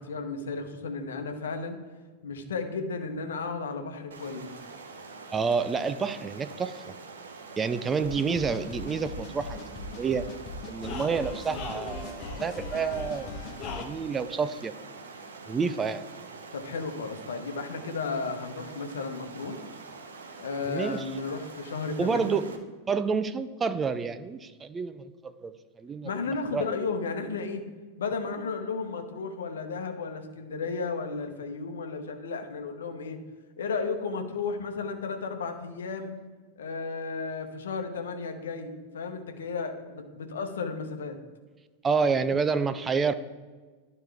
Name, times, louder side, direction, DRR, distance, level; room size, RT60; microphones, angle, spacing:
voice 1, 0.0-1.8 2.2-4.5 16.5-19.6 20.4-22.4 26.0-27.6 28.0-33.2 33.6-36.2 36.6-41.2, left 4 dB, 65° left, 6 dB, 0.9 m, -34 dB
Stream, 4.1-22.6, right 4 dB, 70° right, 0.8 m, -45 dB
voice 2, 5.3-6.9 7.6-10.3 10.7-13.3 13.7-14.7 15.5-16.0 20.7-21.1 22.0-22.5 22.9-26.1 26.5-26.7 41.8-43.1, right 5 dB, 20° right, 12 dB, 0.4 m, -29 dB
sound 1, 8.0-13.9, left 3 dB, 35° left, 1.2 m, -39 dB
12.0 x 4.3 x 3.4 m, 1.4 s
figure-of-eight pair, 90°, 0 cm